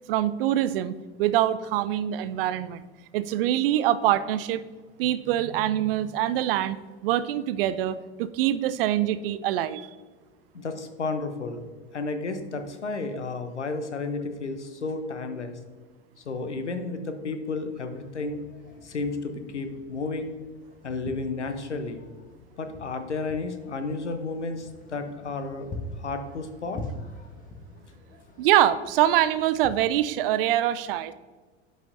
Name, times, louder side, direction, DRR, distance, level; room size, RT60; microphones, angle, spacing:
voice 1, 0.1-2.8 3.1-4.6 5.0-9.9 28.4-31.1, right 12 dB, 55° right, 14 dB, 0.5 m, -24 dB
voice 2, 10.5-11.6 11.9-15.6 16.2-18.4 18.8-20.4 20.8-22.0 22.6-25.7 25.9-26.8, left 3 dB, 85° left, 8 dB, 0.8 m, -32 dB
sound 1, 17.9-29.7, left 2 dB, 25° left, 1.3 m, -44 dB
10.5 x 6.2 x 2.6 m, 1.4 s
figure-of-eight pair, 80°, 34 cm